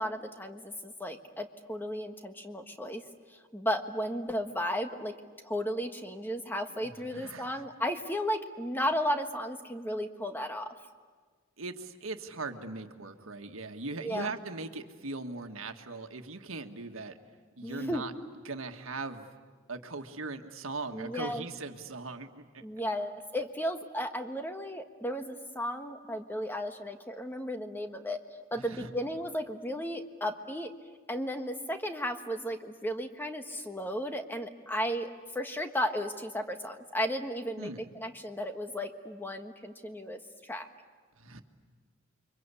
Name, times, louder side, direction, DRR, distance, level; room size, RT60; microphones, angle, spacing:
voice 1, 0.0-3.0 3.5-5.1 5.4-10.7 14.0-14.3 17.6-18.0 20.9-21.4 22.6-28.2 28.5-30.7 31.1-35.1 35.3-40.7, equal, 10° left, 6 dB, 1.5 m, -34 dB
voice 2, 6.7-7.6 11.6-17.1 17.5-18.1 18.4-19.3 19.7-22.4 28.5-28.9 37.6-37.8 41.2-41.4, right 3 dB, 85° right, 6 dB, 1.7 m, -40 dB
29.5 x 24.5 x 8.4 m, 1.5 s
head